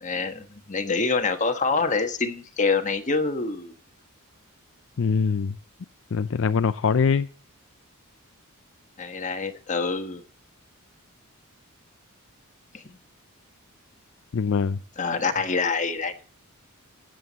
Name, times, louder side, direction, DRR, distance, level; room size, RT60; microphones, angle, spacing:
voice 1, 0.0-3.7 9.0-10.2 12.7-13.0 15.0-16.2, left 4 dB, 35° left, 1.4 m, -26 dB
voice 2, 5.0-5.6 6.1-7.3 14.3-14.8, left 5 dB, 60° left, 0.5 m, -23 dB
16.0 x 7.9 x 4.1 m
head